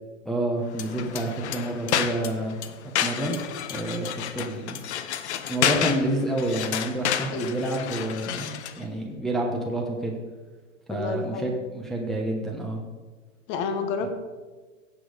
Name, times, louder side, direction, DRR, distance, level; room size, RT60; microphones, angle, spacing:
voice 1, 0.2-2.6 3.0-3.4 3.7-4.8 5.5-10.1 10.9-12.8 14.0-14.1, right 1 dB, ahead, -2 dB, 1.1 m, -29 dB
sound 1, 0.7-8.8, left 10 dB, 60° left, 1.0 m, -30 dB
voice 2, 10.9-11.6 13.5-14.1, left 4 dB, 30° left, 8 dB, 1.5 m, -29 dB
16.5 x 6.2 x 5.1 m, 1.3 s
hypercardioid pair, 135°, 39 cm